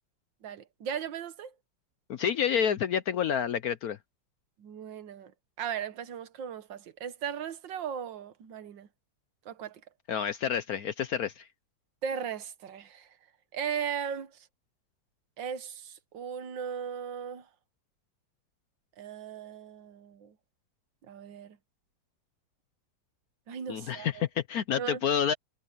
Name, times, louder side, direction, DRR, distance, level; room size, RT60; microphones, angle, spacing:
voice 1, 0.4-1.5 4.6-5.3 5.6-8.9 9.5-9.8 12.0-13.1 13.5-14.3 15.4-17.4 19.0-20.3 21.1-21.6 23.5-24.2 24.8-25.0, right 8 dB, 70° right, 1.8 m, -37 dB
voice 2, 2.1-4.0 10.1-11.5 23.7-25.3, left 8 dB, 65° left, 1.0 m, -29 dB
omnidirectional pair, 2.1 m